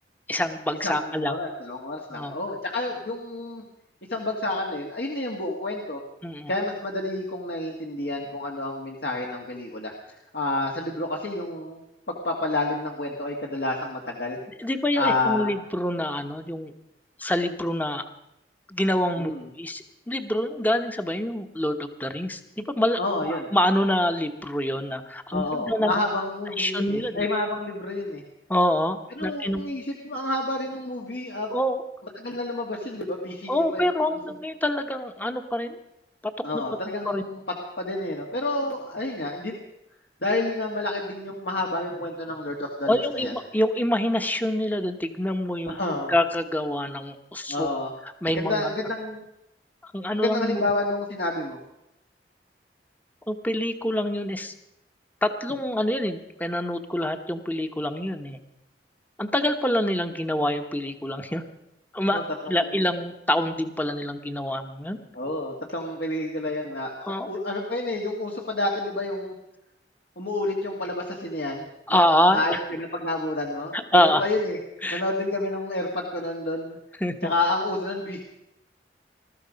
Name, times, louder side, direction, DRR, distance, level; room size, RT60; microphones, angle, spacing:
voice 1, 0.3-1.3 2.1-2.3 6.2-6.5 14.6-16.7 17.2-18.0 18.7-19.3 19.6-25.9 26.6-27.2 28.5-29.6 31.5-31.8 33.5-35.8 36.5-36.6 37.0-37.2 42.8-45.8 46.1-47.7 48.2-48.7 49.8-50.7 53.3-54.5 55.2-58.4 59.2-61.4 61.9-62.2 62.5-65.0 67.0-67.3 71.9-72.6 73.7-74.2 74.8-75.0 77.0-77.3, left 1 dB, 10° left, 8 dB, 1.0 m, -26 dB
voice 2, 0.8-3.6 4.1-6.0 6.5-11.8 12.1-14.7 15.0-15.5 19.2-19.5 23.0-23.5 25.3-28.2 29.2-31.5 32.2-34.2 36.4-37.4 37.8-39.6 40.2-43.3 45.7-46.1 47.5-47.9 48.3-49.2 50.1-51.6 62.0-62.7 65.1-69.3 70.2-74.6 74.9-76.8 77.2-78.2, left 2 dB, 65° left, 0 dB, 2.0 m, -29 dB
20.5 x 13.5 x 5.2 m, 0.85 s
head